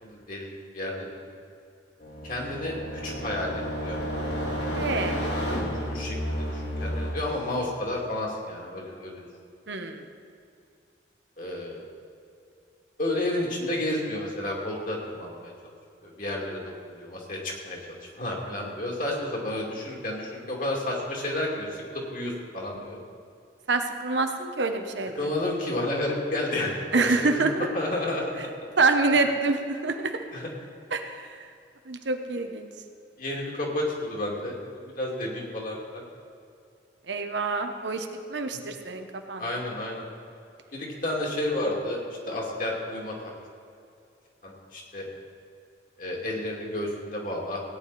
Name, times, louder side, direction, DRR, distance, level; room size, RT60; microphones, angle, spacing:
voice 1, 0.0-1.2 2.2-4.0 5.8-9.3 11.4-11.8 13.0-15.5 16.0-23.0 25.1-28.3 30.3-30.5 33.2-36.0 39.4-40.1 40.7-42.0 42.3-43.1 44.4-45.1 46.0-47.6, left 1 dB, 45° left, -2 dB, 2.5 m, -31 dB
sound 1, 2.0-7.1, equal, 65° left, 3.0 m, -31 dB
voice 2, 4.7-5.2 9.7-10.0 23.7-25.1 26.9-27.7 28.8-30.2 30.9-31.4 31.9-32.7 37.1-39.4, right 3 dB, 75° right, 6 dB, 1.0 m, -26 dB
17.0 x 9.7 x 4.2 m, 2.5 s
head